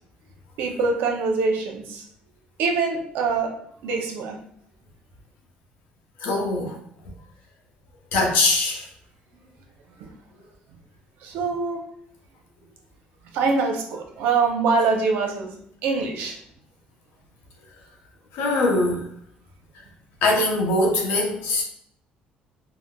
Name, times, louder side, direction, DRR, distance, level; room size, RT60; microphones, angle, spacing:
voice 1, 0.6-2.0 2.6-3.5 3.8-4.4 11.2-11.8 13.3-15.5 15.8-16.4, right 4 dB, 80° right, 2 dB, 0.6 m, -24 dB
voice 2, 6.2-6.8 8.1-8.9 18.3-19.1 20.2-21.6, left 2 dB, 90° left, 0 dB, 0.8 m, -22 dB
3.8 x 2.1 x 2.2 m, 0.68 s
cardioid pair, 135°, 3 cm